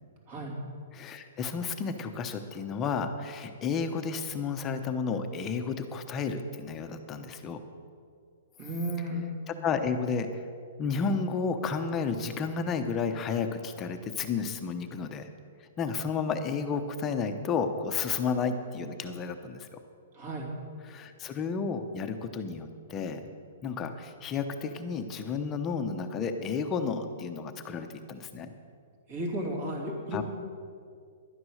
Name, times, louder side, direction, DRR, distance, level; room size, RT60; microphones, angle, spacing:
voice 1, 0.9-7.6 9.5-10.4 10.8-15.3 15.8-19.7 20.8-23.2 23.6-28.5 30.1-30.2, left 5 dB, 20° left, 7 dB, 0.8 m, -32 dB
voice 2, 8.6-9.3 20.1-20.5 29.1-30.2, right 1 dB, 40° right, 0 dB, 2.9 m, -33 dB
11.5 x 9.5 x 6.4 m, 2.2 s
hypercardioid pair, 160°, 0 cm